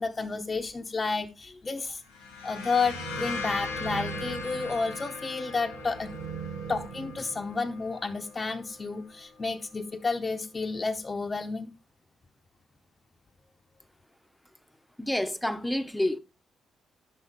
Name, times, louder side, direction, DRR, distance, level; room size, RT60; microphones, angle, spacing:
voice 1, 0.0-2.0 2.4-6.1 6.7-11.7, left 4 dB, 35° left, 0.8 m, -31 dB
sound 1, 2.0-9.6, left 4 dB, 85° left, 1.4 m, -40 dB
sound 2, 2.8-7.9, right 6 dB, 75° right, 1.0 m, -41 dB
voice 2, 15.0-16.2, left 1 dB, 5° left, 0.9 m, -28 dB
10.5 x 6.5 x 3.6 m
hypercardioid pair, 40°, 0 cm